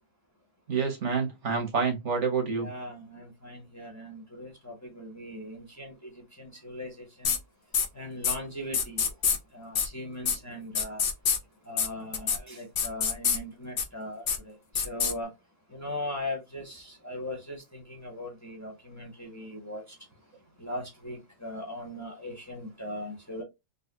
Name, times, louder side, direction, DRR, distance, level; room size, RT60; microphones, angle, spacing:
voice 1, 0.7-2.7, right 5 dB, 75° right, 1.4 m, -28 dB
voice 2, 2.5-6.1 6.4-7.4 7.9-9.1 9.5-11.0 11.7-14.5 14.8-15.3 15.7-19.8 20.6-23.4, left 1 dB, 15° left, 1.0 m, -39 dB
sound 1, 7.2-7.4 7.7-7.9 8.2-8.3 8.7-9.4 9.7-9.9 10.2-10.4 10.7-11.4 11.8-11.9 12.1-12.4 12.8-13.4 13.8-13.9 14.3-14.4 14.7-15.1, left 6 dB, 55° left, 0.8 m, -25 dB
4.0 x 2.2 x 2.7 m
omnidirectional pair, 1.2 m